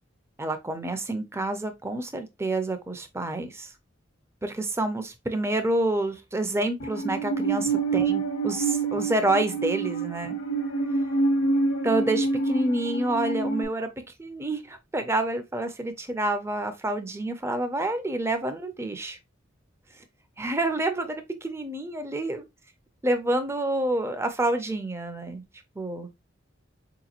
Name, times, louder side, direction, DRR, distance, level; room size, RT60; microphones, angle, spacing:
voice 1, 0.4-3.7 4.4-10.4 11.8-13.9 14.2-19.2 20.4-22.4 23.0-25.4 25.8-26.1, right 2 dB, 15° right, 0.5 m, -28 dB
Musical instrument, 6.8-13.6, right 3 dB, 85° left, 1.0 m, -27 dB
4.5 x 2.9 x 2.4 m
head